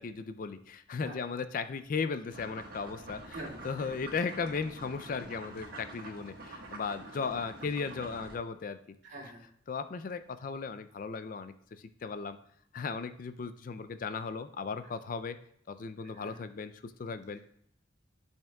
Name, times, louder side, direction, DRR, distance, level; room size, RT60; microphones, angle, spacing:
voice 1, 0.0-3.4 3.6-8.8 9.7-11.5 12.0-12.4 12.7-15.4 15.7-17.4, left 5 dB, 45° left, 11 dB, 0.4 m, -36 dB
sound 1, 2.3-8.4, right 2 dB, 50° right, 1.4 m, -47 dB
voice 2, 3.3-4.3 9.0-9.5 16.1-16.4 17.3-17.5, right 1 dB, 70° right, -4 dB, 2.2 m, -46 dB
10.5 x 5.4 x 2.3 m, 0.72 s
head